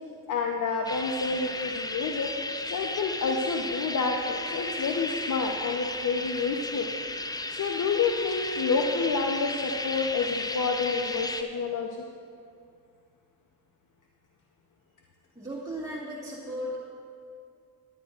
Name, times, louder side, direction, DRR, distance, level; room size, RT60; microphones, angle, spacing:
voice 1, 0.3-2.3 2.7-6.9 7.5-12.1, left 4 dB, 55° left, 2 dB, 0.8 m, -29 dB
sound 1, 0.9-11.4, left 2 dB, 10° left, 0.5 m, -34 dB
voice 2, 15.4-16.8, equal, 10° right, -7 dB, 1.7 m, -36 dB
17.5 x 10.5 x 2.5 m, 2.4 s
cardioid pair, 90°, 37 cm